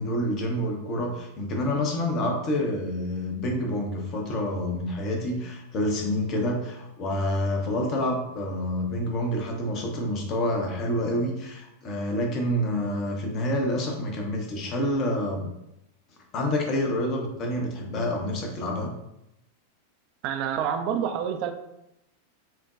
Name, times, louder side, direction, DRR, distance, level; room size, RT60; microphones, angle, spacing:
voice 1, 0.0-15.4 16.3-18.9, left 1 dB, 35° left, 1 dB, 0.8 m, -28 dB
voice 2, 20.2-21.5, right 8 dB, 45° right, 7 dB, 0.4 m, -27 dB
5.8 x 2.2 x 2.5 m, 0.84 s
figure-of-eight pair, 90°, 0 cm